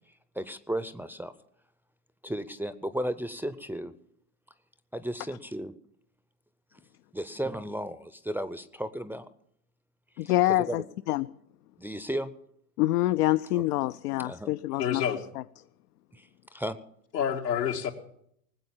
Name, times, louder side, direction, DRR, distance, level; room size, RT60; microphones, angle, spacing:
voice 1, 0.4-1.3 2.2-3.9 4.9-5.7 7.1-9.3 10.2-10.9 11.8-12.3 13.5-13.6 14.1-14.5 16.1-16.8, right 1 dB, 5° right, 0.5 m, -34 dB
voice 2, 10.2-11.3 12.8-15.0, left 16 dB, 70° left, 0.6 m, -26 dB
voice 3, 14.8-15.2 17.1-17.9, left 8 dB, 90° left, 2.0 m, -28 dB
20.0 x 7.8 x 7.1 m
hypercardioid pair, 85°, 48 cm